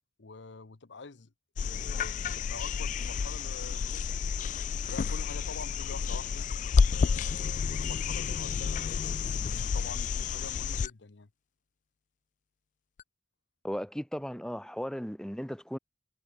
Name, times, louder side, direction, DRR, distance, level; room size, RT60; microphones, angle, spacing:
voice 1, 0.2-1.3 1.6-4.3 4.8-6.5 6.9-11.3, left 4 dB, 85° left, 0.9 m, -46 dB
sound 1, 1.6-10.9 13.0-13.1, left 5 dB, 45° left, 0.3 m, -30 dB
voice 2, 13.6-15.8, equal, 5° left, 0.8 m, -36 dB
head